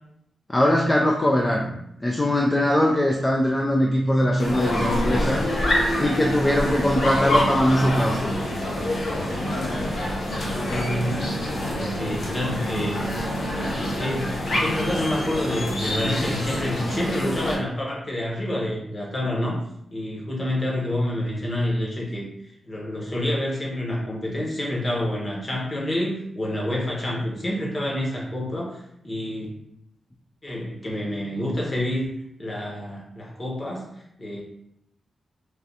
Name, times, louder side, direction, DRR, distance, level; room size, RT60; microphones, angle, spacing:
voice 1, 0.5-1.7 2.0-5.4 6.0-8.4, left 1 dB, 20° left, -1 dB, 0.4 m, -21 dB
sound 1, 4.4-17.6, left 1 dB, 70° left, 0.8 m, -26 dB
voice 2, 10.2-11.1 11.6-13.1 13.5-19.6 19.9-29.5 30.4-32.1 32.4-33.9 34.2-34.4, left 1 dB, 40° left, -3 dB, 1.0 m, -28 dB
3.2 x 2.4 x 2.7 m, 0.77 s
cardioid pair, 70°, 0 cm